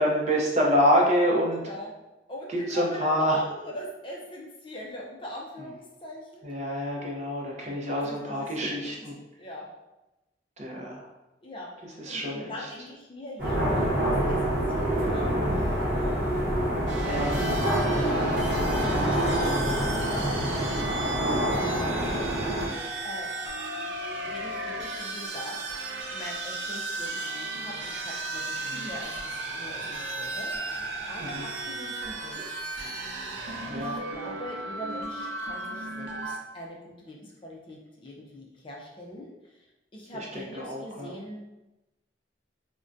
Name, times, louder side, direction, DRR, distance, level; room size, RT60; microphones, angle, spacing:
voice 1, 0.0-1.6 2.5-3.4 6.4-9.2 10.6-11.1 12.0-12.7 17.0-17.3 31.2-31.4 33.7-34.0 40.3-41.1, equal, 40° right, -2 dB, 0.6 m, -26 dB
voice 2, 1.5-1.9 2.3-6.4 7.9-9.1 9.4-9.7 11.4-13.8 14.3-16.1 17.0-19.2 19.6-19.9 20.2-22.3 23.0-23.3 24.2-25.7 26.1-32.5 33.7-39.6 39.9-41.4, left 1 dB, 30° left, -2 dB, 0.4 m, -42 dB
sound 1, 13.4-22.7, equal, 55° right, 1.0 m, -26 dB
sound 2, 16.9-36.4, right 2 dB, 90° right, 0.5 m, -35 dB
3.5 x 2.1 x 2.5 m, 0.98 s
head